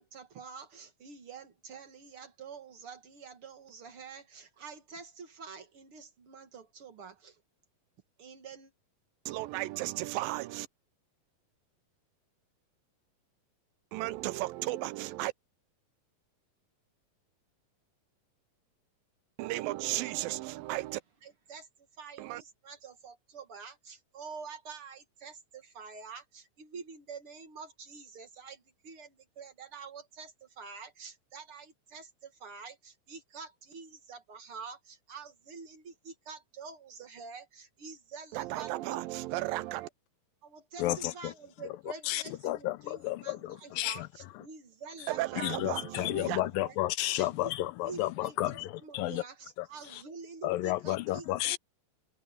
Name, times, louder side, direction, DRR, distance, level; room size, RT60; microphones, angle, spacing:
voice 1, 0.0-7.4 8.2-8.7 21.2-21.7 22.0-39.0 39.7-39.9 40.4-46.2 46.6-46.8 47.2-47.5 47.8-51.6, right 5 dB, 45° right, 2.2 m, -47 dB
voice 2, 9.3-10.7 13.9-15.3 19.4-21.0 22.2-22.4 38.3-39.9 45.1-46.5, right 17 dB, 85° right, 2.4 m, -34 dB
voice 3, 40.8-41.3 42.1-44.1 45.4-49.2 49.6-49.7 49.9-50.0 50.4-51.6, left 16 dB, 80° left, 2.5 m, -32 dB
omnidirectional pair, 4.1 m